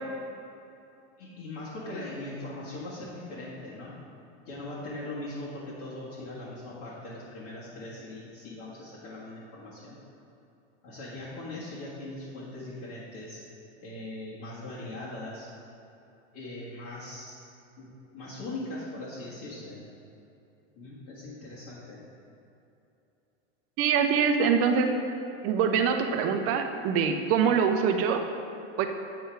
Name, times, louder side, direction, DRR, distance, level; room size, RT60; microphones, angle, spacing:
voice 1, 1.2-3.9 4.5-10.0 10.8-13.4 13.8-15.5 16.3-17.4 17.8-19.8 20.8-22.0, left 2 dB, 50° left, -9 dB, 1.7 m, -40 dB
voice 2, 23.8-24.9 25.4-28.2 28.8-28.9, right 6 dB, 40° right, 6 dB, 0.6 m, -24 dB
8.2 x 4.6 x 4.5 m, 2.8 s
supercardioid pair, 135°, 35 cm